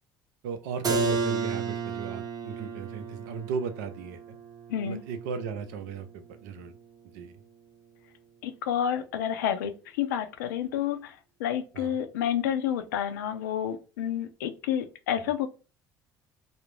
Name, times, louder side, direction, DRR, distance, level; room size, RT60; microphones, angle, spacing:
voice 1, 0.4-4.4 4.8-6.7 7.1-7.4 11.7-12.0 15.3-15.4, right 6 dB, 80° right, 9 dB, 0.5 m, -36 dB
Keyboard (musical), 0.8-6.4, right 4 dB, 40° right, 0.7 m, -33 dB
voice 2, 4.7-5.0 8.4-9.7 10.0-11.1 11.4-15.5, left 9 dB, 85° left, 8 dB, 0.4 m, -29 dB
2.3 x 2.0 x 3.1 m, 0.33 s
hypercardioid pair, 65°, 10 cm